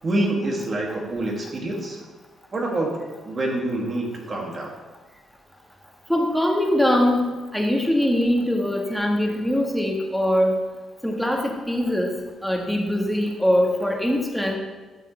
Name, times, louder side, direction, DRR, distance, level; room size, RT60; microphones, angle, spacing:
voice 1, 0.0-2.0 2.5-3.0 3.3-4.8, right 1 dB, 40° right, -1 dB, 2.3 m, -26 dB
voice 2, 6.1-10.6 11.0-12.2 12.4-14.6, left 1 dB, ahead, 1 dB, 1.6 m, -22 dB
12.0 x 6.7 x 3.3 m, 1.3 s
cardioid pair, 90°, 0 cm